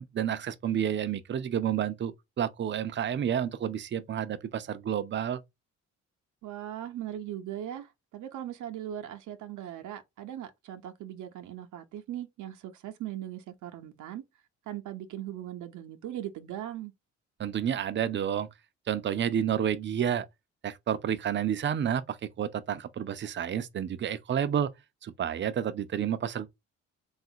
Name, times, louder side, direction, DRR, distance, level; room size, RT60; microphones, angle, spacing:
voice 1, 0.0-5.4 17.4-18.5 18.9-20.3 20.6-24.7 25.0-26.5, right 9 dB, 40° right, 0.5 m, -30 dB
voice 2, 6.4-14.2 14.7-16.9, right 11 dB, 80° right, 0.7 m, -39 dB
3.3 x 2.4 x 2.7 m
cardioid pair, 90°, 30 cm